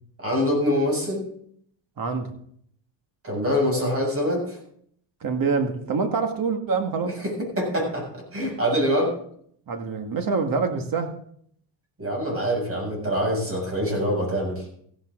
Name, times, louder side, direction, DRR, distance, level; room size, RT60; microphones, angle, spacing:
voice 1, 0.2-1.2 3.2-4.6 7.6-9.1 12.0-14.6, equal, 30° right, 1 dB, 7.2 m, -24 dB
voice 2, 2.0-2.3 5.2-7.2 9.7-11.1, right 4 dB, 45° right, 6 dB, 1.9 m, -25 dB
15.5 x 12.0 x 3.8 m, 0.64 s
cardioid pair, 115°, 47 cm